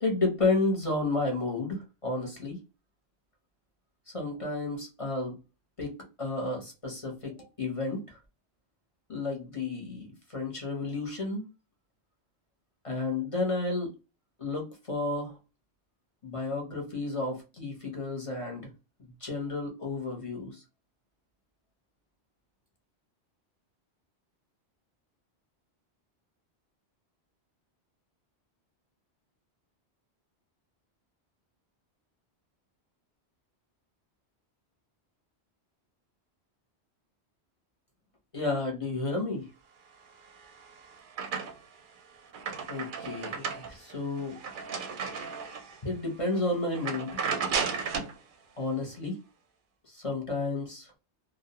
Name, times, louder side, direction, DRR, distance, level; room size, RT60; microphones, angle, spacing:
voice 1, 0.0-2.6 4.1-5.4 5.8-8.2 9.1-11.4 12.8-13.9 14.4-15.4 16.2-18.7 19.0-20.6 38.3-39.5 42.7-44.4 45.8-47.2 48.6-49.2 49.9-51.0, left 2 dB, 35° left, 0 dB, 0.7 m, -32 dB
sound 1, 40.2-41.8 42.2-45.8 46.2-46.4 46.7-48.2, right 5 dB, 60° right, 0.6 m, -34 dB
2.3 x 2.1 x 2.7 m, 0.29 s
omnidirectional pair, 1.1 m